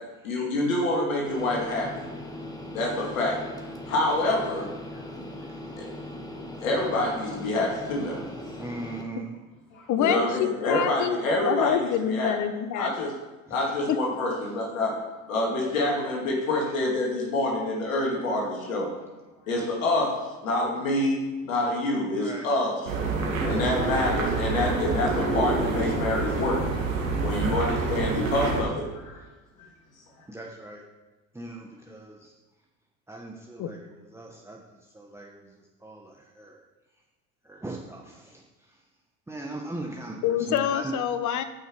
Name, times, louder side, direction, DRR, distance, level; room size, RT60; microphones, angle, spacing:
voice 1, 0.2-2.1 2.7-3.4 3.9-4.7 6.1-8.2 9.7-12.3 12.7-13.1 13.5-14.9 15.3-18.9 19.5-20.1 20.4-21.2 21.4-22.9 23.4-26.6 27.2-29.2, left 1 dB, 85° left, -2 dB, 2.4 m, -27 dB
sound 1, 1.2-9.0, left 1 dB, 10° left, 1.5 m, -39 dB
voice 2, 8.6-9.4 22.1-22.5 23.3-23.7 27.4-27.7 30.3-30.8 31.3-32.3 33.1-36.6 37.4-38.8 39.3-40.9, right 2 dB, 5° right, -1 dB, 1.1 m, -40 dB
voice 3, 9.9-13.1 13.9-14.0 33.6-33.7 40.2-41.4, left 9 dB, 50° left, 11 dB, 1.0 m, -26 dB
sound 2, 22.9-28.6, right 3 dB, 90° right, 2.1 m, -27 dB
11.5 x 5.7 x 4.7 m, 1.2 s
hypercardioid pair, 75°, 39 cm